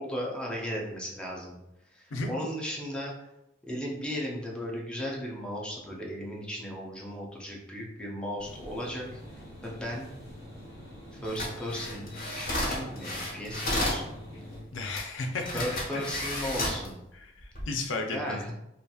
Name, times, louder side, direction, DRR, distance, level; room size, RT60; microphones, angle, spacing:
voice 1, 0.0-1.6 1.9-3.1 3.6-9.2 9.6-10.1 11.2-12.1 12.3-14.1 15.5-17.0 18.1-18.5, equal, 5° left, -2 dB, 0.5 m, -36 dB
sound 1, 8.4-14.6, left 1 dB, 15° right, 1.3 m, -45 dB
sound 2, 11.2-14.0 15.0-15.1 15.4-16.9 17.4-17.6, left 1 dB, 50° left, 1.0 m, -32 dB
voice 2, 14.7-15.5 15.9-16.0 17.1-18.5, left 3 dB, 85° left, 4 dB, 0.5 m, -34 dB
2.8 x 2.5 x 2.3 m, 0.86 s
head